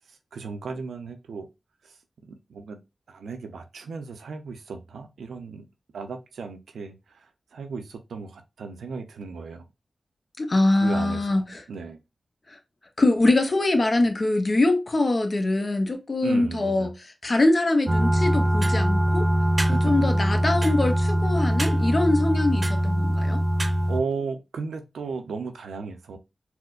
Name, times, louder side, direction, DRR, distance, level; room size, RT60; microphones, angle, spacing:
voice 1, 0.1-1.5 1.8-2.0 2.2-2.8 3.1-5.7 5.9-9.7 10.8-12.0 16.2-16.9 19.6-19.9 23.9-26.2, right 4 dB, 90° right, 0.5 m, -35 dB
voice 2, 10.4-11.6 13.0-16.9 17.2-19.3 19.7-23.4, left 2 dB, 45° left, 0.7 m, -23 dB
sound 1, 17.9-24.0, equal, 40° right, 0.7 m, -22 dB
4.2 x 2.1 x 2.4 m
cardioid pair, 40°, 0 cm